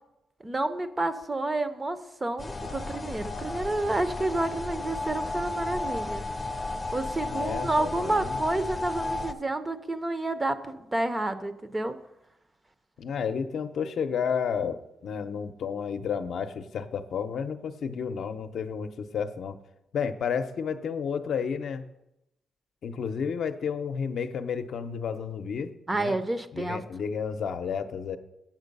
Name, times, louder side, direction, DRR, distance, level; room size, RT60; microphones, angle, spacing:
voice 1, 0.4-6.2 6.9-12.0 25.9-26.8, right 2 dB, 20° right, 11 dB, 0.6 m, -29 dB
sound 1, 2.4-9.3, left 2 dB, 25° left, 0.6 m, -33 dB
voice 2, 7.3-8.4 13.0-19.6 19.9-21.8 22.8-26.2 26.5-28.2, left 6 dB, 65° left, 8 dB, 0.6 m, -31 dB
8.1 x 7.4 x 5.3 m, 0.89 s
cardioid pair, 110°, 0 cm